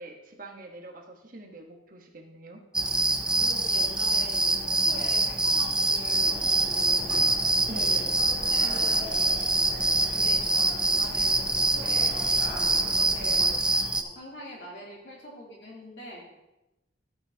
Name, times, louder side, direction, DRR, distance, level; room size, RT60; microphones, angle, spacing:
voice 1, 0.0-2.6 7.7-8.2, right 2 dB, 45° right, 2 dB, 1.2 m, -44 dB
sound 1, 2.7-14.0, right 2 dB, 5° right, 0.4 m, -25 dB
voice 2, 3.3-7.2 7.7-9.3 9.7-16.3, equal, 60° left, -4 dB, 3.0 m, -44 dB
sound 2, 6.1-13.5, equal, 30° left, 2.1 m, -41 dB
13.5 x 7.9 x 2.8 m, 0.97 s
head